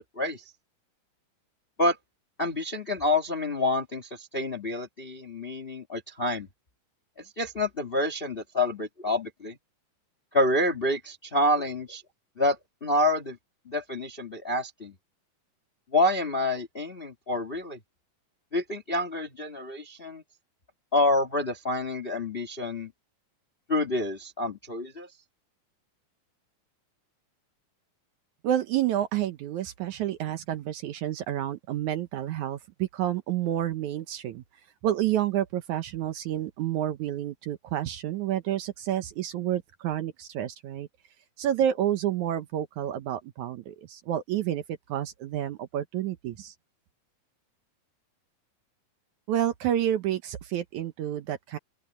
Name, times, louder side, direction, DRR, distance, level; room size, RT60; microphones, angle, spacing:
voice 1, 2.4-6.5 7.4-9.5 10.3-12.0 12.4-13.4 13.6-14.9 15.9-17.8 18.5-20.2 20.9-22.9 23.7-25.1, left 1 dB, 25° left, 1.1 m, -28 dB
voice 2, 28.4-34.4 34.8-40.9 41.4-44.6 44.9-46.5 49.3-51.6, right 11 dB, 70° right, 2.1 m, -29 dB
open air
omnidirectional pair, 4.0 m